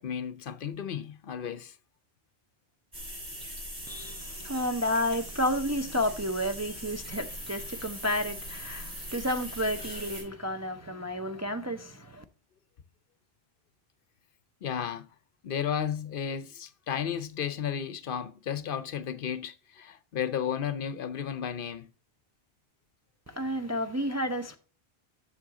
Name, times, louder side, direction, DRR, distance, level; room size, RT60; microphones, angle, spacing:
voice 1, 0.0-1.8 14.6-15.1 15.4-21.9, left 8 dB, 65° left, 0.7 m, -33 dB
sound 1, 2.9-10.2, equal, 45° right, 3.5 m, -41 dB
voice 2, 3.9-12.2 23.3-24.6, equal, 25° right, 0.4 m, -31 dB
7.7 x 6.7 x 3.7 m
omnidirectional pair, 1.0 m